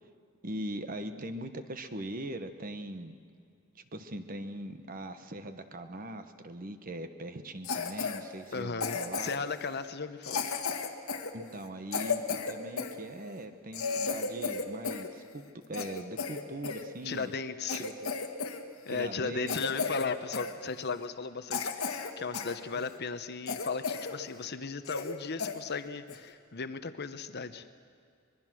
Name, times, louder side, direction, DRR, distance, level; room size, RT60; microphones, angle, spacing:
voice 1, 0.4-3.2 3.9-9.3 11.3-15.4 15.7-17.3 17.7-18.2 18.9-19.6, right 1 dB, 40° right, 9 dB, 1.2 m, -41 dB
Cough, 7.6-8.2 8.8-9.5 10.2-13.0 13.4-13.5 13.7-15.1 15.4-16.8 17.3-17.4 17.7-18.6 18.9-19.1 19.5-20.1 20.3-20.5 21.0-21.1 21.5-22.6 22.9-23.0 23.5-24.2 24.5-24.6 24.9-25.1 25.4-25.6 26.1-26.3, left 5 dB, 80° left, 1.7 m, -34 dB
voice 2, 8.5-10.4 17.0-17.8 18.9-27.7, left 5 dB, 50° left, 10 dB, 0.9 m, -36 dB
24.5 x 22.0 x 6.3 m, 2.3 s
head